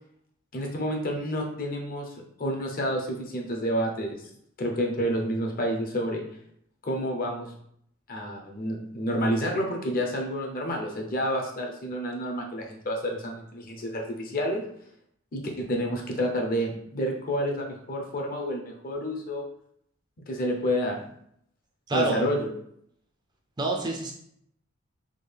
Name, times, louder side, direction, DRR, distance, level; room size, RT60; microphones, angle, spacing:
voice 1, 0.5-2.1 2.4-4.3 4.6-6.2 6.8-7.5 8.1-14.6 15.3-19.4 20.3-21.0 21.9-22.5, equal, 45° left, 1 dB, 0.6 m, -29 dB
voice 2, 21.9-22.3 23.6-24.1, right 3 dB, 20° right, 0 dB, 0.4 m, -27 dB
3.6 x 2.3 x 3.4 m, 0.69 s
head